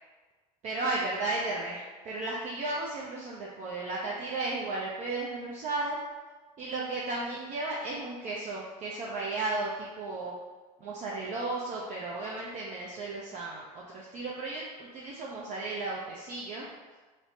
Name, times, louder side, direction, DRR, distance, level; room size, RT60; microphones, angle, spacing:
voice 1, 0.6-6.0 6.6-10.3 10.8-16.7, right 2 dB, 40° right, -4 dB, 0.5 m, -34 dB
3.0 x 2.0 x 2.7 m, 1.3 s
hypercardioid pair, 85°, 19 cm